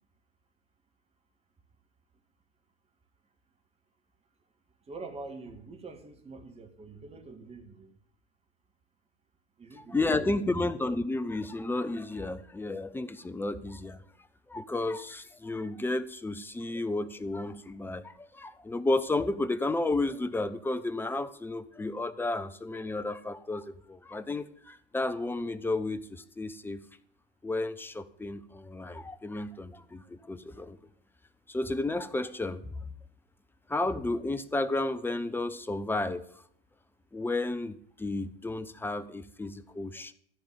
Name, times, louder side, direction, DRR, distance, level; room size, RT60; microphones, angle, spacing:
voice 1, 4.9-7.9 9.6-10.1 10.4-10.6, right 3 dB, 20° right, 5 dB, 2.1 m, -45 dB
voice 2, 9.9-14.0 14.5-26.8 27.4-30.8 31.5-32.9 33.7-36.2 37.1-40.1, left 2 dB, 5° left, 13 dB, 0.6 m, -32 dB
14.5 x 5.1 x 9.1 m, 0.63 s
figure-of-eight pair, 90°, 34 cm